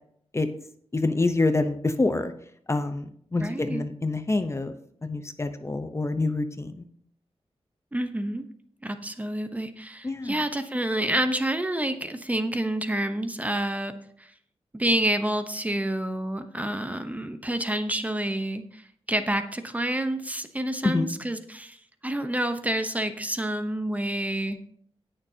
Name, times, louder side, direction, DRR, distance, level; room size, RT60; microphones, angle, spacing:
voice 1, 0.9-2.3 2.7-4.7 5.0-6.9 10.0-10.4 20.8-21.1, left 2 dB, 25° left, 8 dB, 0.8 m, -26 dB
voice 2, 3.4-3.8 7.9-8.4 8.8-13.9 14.2-14.3 14.7-21.8 22.0-24.6, right 1 dB, 15° right, 8 dB, 0.8 m, -28 dB
19.0 x 6.7 x 2.8 m, 0.63 s
wide cardioid pair, 115°, 10 cm